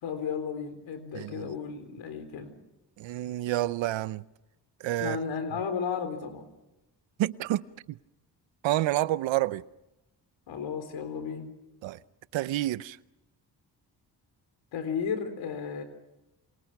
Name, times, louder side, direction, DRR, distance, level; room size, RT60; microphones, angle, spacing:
voice 1, 0.0-2.5 5.0-6.5 10.5-11.5 14.7-15.8, left 6 dB, 90° left, 3.9 m, -34 dB
voice 2, 1.1-1.5 3.0-4.2 4.8-5.2 7.2-7.6 8.6-9.6 11.8-12.0 12.3-13.0, right 15 dB, 90° right, 0.8 m, -28 dB
28.0 x 27.0 x 6.0 m
cardioid pair, 65°, 44 cm